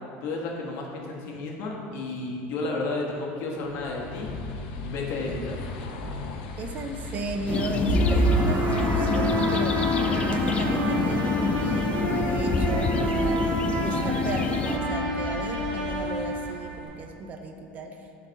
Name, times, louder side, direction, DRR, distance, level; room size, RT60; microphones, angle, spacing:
voice 1, 0.2-4.3 4.8-5.6, left 3 dB, 60° left, -1 dB, 1.1 m, -32 dB
sound 1, 3.6-17.1, left 2 dB, 90° left, 0.7 m, -37 dB
voice 2, 6.6-11.9 12.2-13.4 13.8-18.3, right 2 dB, 30° right, 5 dB, 0.5 m, -35 dB
sound 2, 7.5-14.8, left 5 dB, 25° left, 0.3 m, -27 dB
sound 3, 7.9-16.9, right 1 dB, 65° right, 1.4 m, -27 dB
6.5 x 4.0 x 5.6 m, 2.5 s
cardioid pair, 155°, 5 cm